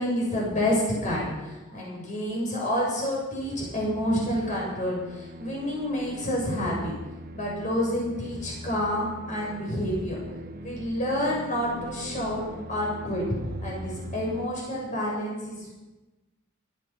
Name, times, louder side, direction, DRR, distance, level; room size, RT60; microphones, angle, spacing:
voice 1, 0.0-6.9 7.3-10.2 10.6-12.4 12.7-13.2 13.6-15.7, left 1 dB, 40° left, -3 dB, 7.2 m, -28 dB
sound 1, 3.4-14.5, equal, 45° right, 0.9 m, -42 dB
23.5 x 9.6 x 5.9 m, 1.1 s
head